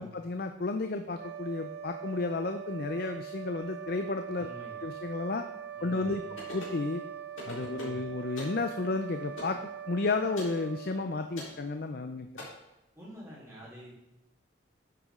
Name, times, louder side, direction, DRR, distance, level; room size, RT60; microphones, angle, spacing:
voice 1, 0.0-4.5 4.8-5.4 5.8-6.2 6.5-7.0 7.5-9.6 9.9-12.5, left 3 dB, 50° left, 7 dB, 0.5 m, -32 dB
sound 1, 1.1-11.7, right 9 dB, 60° right, 0.8 m, -42 dB
voice 2, 4.4-4.8 5.8-6.4 7.6-8.2 12.9-13.9, equal, 15° right, -9 dB, 4.0 m, -48 dB
sound 2, 6.4-6.8 7.4-8.0 8.4-8.6 9.4-9.6 10.4-10.6 11.4-11.6 12.4-12.5, left 2 dB, 85° left, 4.0 m, -42 dB
10.5 x 8.2 x 3.7 m, 0.91 s
head